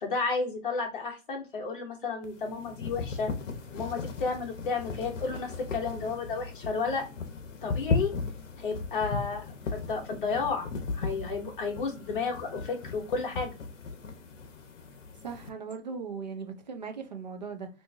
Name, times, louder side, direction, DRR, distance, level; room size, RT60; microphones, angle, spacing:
voice 1, 0.0-3.3 3.7-7.0 7.6-8.1 8.6-9.5 9.7-10.7 10.9-13.5, left 4 dB, 40° left, 1.2 m, -32 dB
sound 1, 2.2-15.5, left 4 dB, 70° left, 0.9 m, -36 dB
voice 2, 15.2-17.7, right 5 dB, 35° right, 0.5 m, -38 dB
3.0 x 2.7 x 3.3 m
hypercardioid pair, 170°, 38 cm